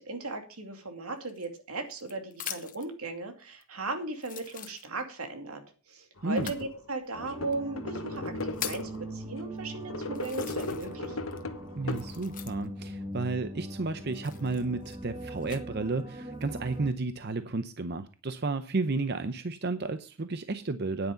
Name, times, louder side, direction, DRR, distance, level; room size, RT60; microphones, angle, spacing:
voice 1, 0.0-11.3, right 2 dB, 85° right, 2.5 m, -37 dB
sound 1, 1.2-2.9 3.6-3.7 4.2-5.2 6.3-6.7 7.5-7.6 8.2-9.0 9.6-9.7 10.1-11.0 11.3-12.8 14.1-15.6 16.3-16.8, left 10 dB, 40° left, 1.1 m, -42 dB
sound 2, 6.2-6.7 7.2-9.1 9.7-12.5, left 3 dB, 65° left, 1.2 m, -37 dB
voice 2, 6.2-6.5 11.8-21.1, right 3 dB, 50° right, 0.7 m, -32 dB
sound 3, 7.1-16.9, right 1 dB, 20° right, 1.3 m, -41 dB
9.8 x 9.3 x 5.2 m
head